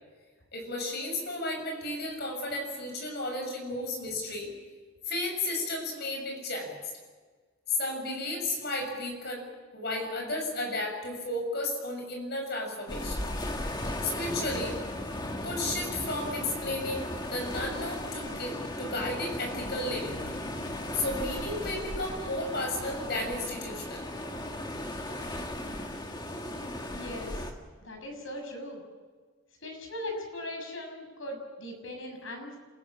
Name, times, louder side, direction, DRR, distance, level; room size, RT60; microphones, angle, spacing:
voice 1, 0.5-4.5 5.1-6.8 7.7-13.2 14.0-14.8 15.4-20.2 20.9-24.0, left 2 dB, 55° left, 2 dB, 6.8 m, -33 dB
sound 1, 12.9-27.5, left 1 dB, 20° left, 1.9 m, -36 dB
voice 2, 26.9-27.5 27.8-28.8 29.6-32.5, left 1 dB, 75° left, 2 dB, 6.7 m, -39 dB
27.5 x 15.5 x 8.7 m, 1.5 s
head